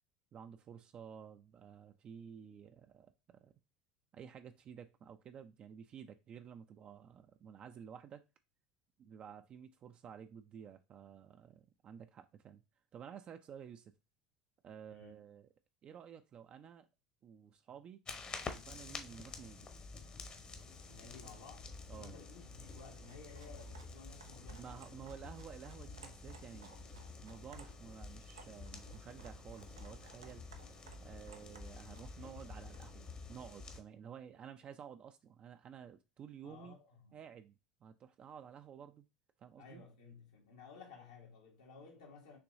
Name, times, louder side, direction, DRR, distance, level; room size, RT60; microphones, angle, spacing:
voice 1, 0.3-3.5 4.1-8.2 9.0-12.6 12.9-13.9 14.6-15.5 15.8-16.9 17.2-18.0 18.7-19.7 21.9-22.1 24.5-30.4 31.0-36.8 37.1-39.1 39.4-39.8, right 8 dB, 40° right, 0.5 m, -52 dB
sound 1, 18.1-33.8, left 4 dB, 35° left, 1.0 m, -49 dB
voice 2, 20.9-24.9 36.4-37.2 39.6-42.4, left 4 dB, 80° left, 1.6 m, -55 dB
sound 2, 22.6-32.9, right 4 dB, 90° right, 0.6 m, -60 dB
5.8 x 3.0 x 2.6 m
hypercardioid pair, 75°, 3 cm